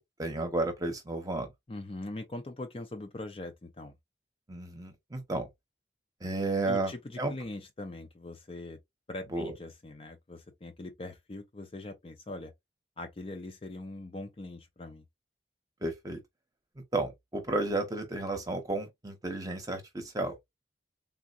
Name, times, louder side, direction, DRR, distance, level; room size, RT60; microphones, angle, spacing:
voice 1, 0.0-1.5 4.5-5.5 6.2-6.9 7.2-7.3 9.3-9.5 15.8-16.2 16.9-20.4, right 2 dB, 20° right, 0.8 m, -32 dB
voice 2, 1.7-3.9 6.6-8.8 9.1-12.5 13.0-15.1, left 2 dB, 30° left, 0.5 m, -42 dB
3.6 x 2.1 x 2.5 m
head